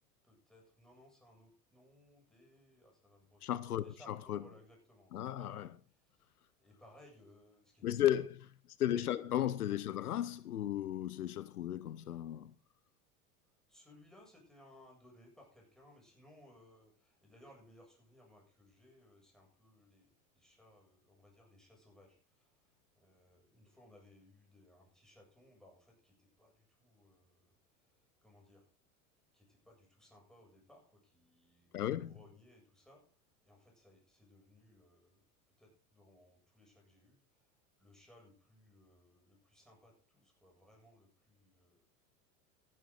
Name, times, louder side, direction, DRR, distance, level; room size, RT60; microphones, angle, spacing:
voice 1, 0.2-6.3 6.6-8.3 13.7-28.7 29.3-31.7 32.0-33.1 33.4-35.2 35.6-37.5 37.8-41.9, left 1 dB, ahead, 7.8 m, -63 dB
voice 2, 3.4-4.4 5.1-5.7 7.8-8.4 8.8-12.5 31.7-32.1, left 12 dB, 80° left, 0.8 m, -35 dB
15.0 x 11.0 x 4.0 m
hypercardioid pair, 85°, 44 cm